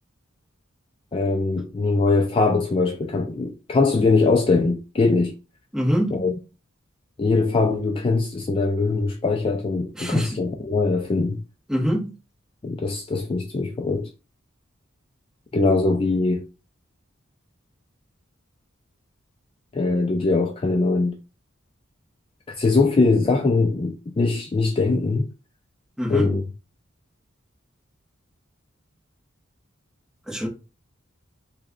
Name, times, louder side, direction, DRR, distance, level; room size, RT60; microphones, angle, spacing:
voice 1, 1.1-5.3 6.1-6.3 7.2-11.4 12.6-14.1 15.5-16.4 19.7-21.2 22.5-25.3 26.1-26.4, left 3 dB, 25° left, 0.3 m, -21 dB
voice 2, 5.7-6.2 9.9-10.4 11.7-12.2 26.0-26.4 30.3-30.5, equal, 5° right, 1.0 m, -24 dB
3.1 x 2.2 x 3.6 m
head